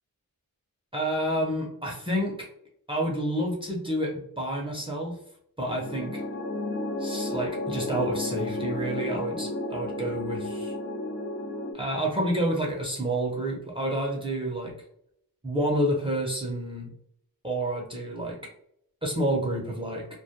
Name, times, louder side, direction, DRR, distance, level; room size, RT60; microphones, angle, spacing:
voice 1, 0.9-2.5 2.9-5.2 5.6-6.2 7.0-10.7 11.7-14.7 15.4-16.9 17.4-18.4 19.0-20.1, right 1 dB, 15° right, -3 dB, 0.6 m, -29 dB
sound 1, 5.7-11.7, left 2 dB, 35° left, 0.6 m, -32 dB
2.2 x 2.1 x 2.8 m, 0.72 s
wide cardioid pair, 70°, 36 cm